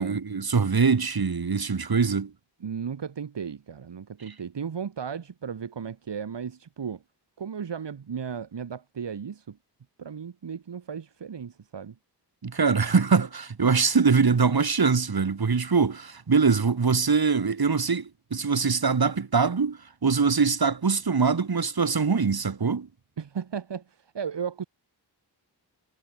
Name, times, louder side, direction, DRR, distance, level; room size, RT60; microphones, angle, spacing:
voice 1, 0.0-2.3 12.4-22.9, right 5 dB, 60° right, 5.0 m, -23 dB
voice 2, 2.6-7.0 7.4-9.6 10.0-11.9 23.2-24.6, right 7 dB, 80° right, 2.9 m, -35 dB
wide cardioid pair, 80°, 42 cm